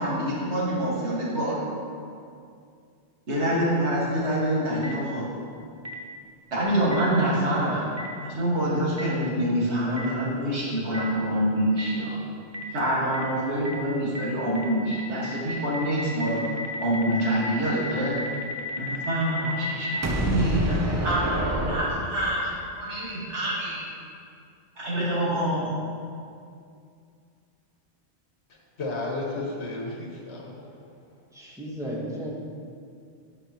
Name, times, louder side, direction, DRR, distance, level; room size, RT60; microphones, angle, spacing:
voice 1, 0.0-1.6 3.3-5.3 6.5-7.9 8.2-12.2 12.7-16.4 16.8-18.2 18.8-23.9 24.8-25.7, right 1 dB, 85° right, -7 dB, 1.9 m, -26 dB
Boom, 4.8-4.9 5.8-5.9 6.9-7.0 8.0-8.1 9.0-9.1 10.0-10.1 10.9-11.0 11.8-11.9 12.5-12.6 13.1-13.2 13.6-13.7 14.1-14.2 14.5-14.6 14.9-22.5, equal, 30° right, 0.3 m, -30 dB
voice 2, 28.5-30.9, left 2 dB, 75° left, -2 dB, 1.4 m, -34 dB
voice 3, 31.3-32.3, equal, 5° right, -5 dB, 1.1 m, -34 dB
9.7 x 4.9 x 2.9 m, 2.4 s
omnidirectional pair, 1.1 m